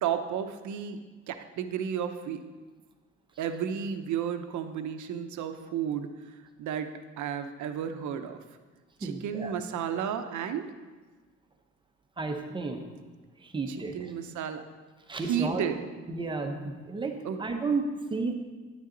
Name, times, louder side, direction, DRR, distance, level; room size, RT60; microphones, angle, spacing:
voice 1, 0.0-2.4 3.4-6.9 7.2-8.4 9.0-10.6 13.7-14.6 15.2-15.9 17.2-17.4, right 8 dB, 80° right, 8 dB, 0.8 m, -33 dB
voice 2, 9.0-9.5 12.2-12.8 13.4-13.9 15.1-15.6 16.1-18.3, right 3 dB, 15° right, 4 dB, 0.7 m, -32 dB
10.0 x 9.5 x 3.9 m, 1.3 s
cardioid pair, 180°, 29 cm